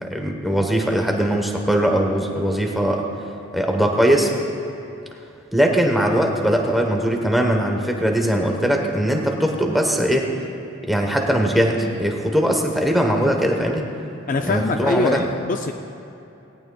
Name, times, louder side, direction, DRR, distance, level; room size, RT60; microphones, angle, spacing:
voice 1, 0.0-3.1 3.5-4.3 5.5-10.3 10.8-13.8 14.4-15.3, equal, ahead, 2 dB, 1.0 m, -20 dB
voice 2, 14.3-15.7, left 3 dB, 40° left, 5 dB, 0.4 m, -23 dB
17.5 x 17.5 x 2.3 m, 2.8 s
head